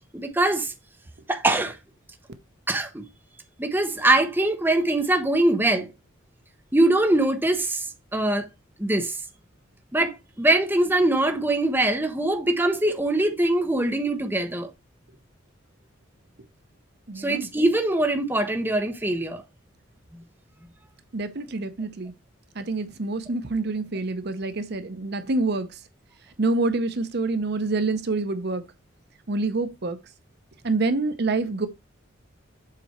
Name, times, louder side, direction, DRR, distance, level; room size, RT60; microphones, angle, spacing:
voice 1, 0.1-0.7 1.3-1.8 2.7-3.0 3.6-5.9 6.7-7.8 8.1-8.5 8.8-9.1 9.9-14.7 17.2-19.4, right 1 dB, 10° right, 0.9 m, -22 dB
voice 2, 17.1-17.5 21.1-22.1 22.6-25.7 26.4-28.6 29.3-30.0 30.6-31.7, right 3 dB, 55° right, 0.7 m, -26 dB
7.4 x 4.2 x 4.3 m
head